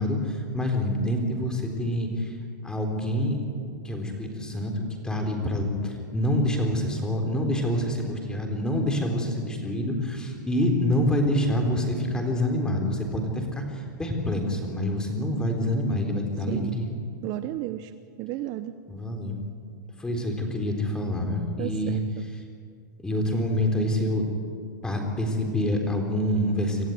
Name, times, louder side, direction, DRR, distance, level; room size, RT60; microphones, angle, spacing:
voice 1, 0.0-2.4 2.6-3.4 3.8-16.9 18.9-19.4 20.0-22.0 23.0-24.2 24.8-26.9, left 1 dB, 5° left, 2 dB, 3.9 m, -26 dB
voice 2, 17.2-17.9 18.2-18.8 21.6-22.3, right 14 dB, 40° right, 12 dB, 0.8 m, -33 dB
27.0 x 14.5 x 9.5 m, 2.2 s
hypercardioid pair, 140°, 11 cm